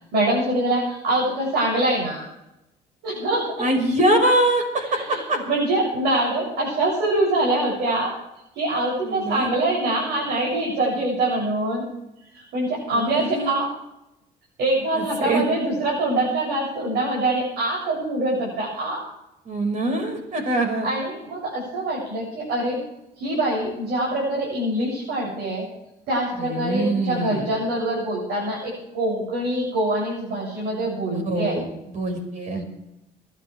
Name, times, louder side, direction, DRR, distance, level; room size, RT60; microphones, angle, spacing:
voice 1, 0.1-2.2 3.0-3.6 4.9-5.2 5.5-8.1 8.5-11.8 12.3-13.7 14.6-19.0 20.8-22.8 23.2-25.7 26.1-31.6, right 1 dB, 75° right, -5 dB, 7.6 m, -24 dB
voice 2, 3.6-5.4 9.0-9.5 12.9-13.6 14.9-15.4 19.5-20.9 26.4-27.5 31.1-31.7 31.9-32.6, right 1 dB, 45° right, 5 dB, 5.5 m, -23 dB
28.5 x 11.5 x 3.5 m, 0.90 s
cardioid pair, 110°, 17 cm